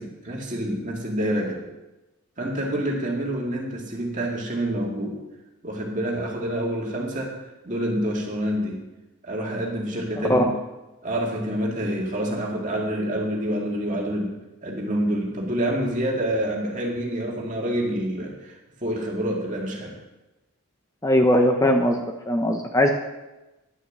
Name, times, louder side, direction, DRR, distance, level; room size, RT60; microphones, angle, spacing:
voice 1, 0.0-1.6 2.4-5.2 5.6-7.4 7.6-8.8 9.2-10.5 11.0-20.0, right 1 dB, 35° right, -1 dB, 2.3 m, -27 dB
voice 2, 21.0-22.9, left 1 dB, 15° left, 3 dB, 0.7 m, -20 dB
11.0 x 6.4 x 7.4 m, 1.0 s
head